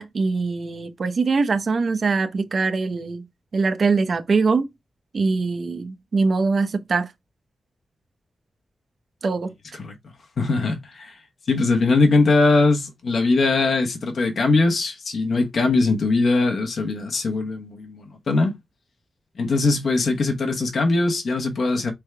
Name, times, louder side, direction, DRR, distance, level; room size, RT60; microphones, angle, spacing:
voice 1, 0.0-3.2 3.5-4.7 5.1-7.1 9.2-9.5, right 4 dB, 45° right, 0.6 m, -22 dB
voice 2, 10.4-11.2 11.5-18.5 19.4-21.9, left 3 dB, 55° left, 0.9 m, -21 dB
4.6 x 3.4 x 3.2 m
wide cardioid pair, 165°, 0 cm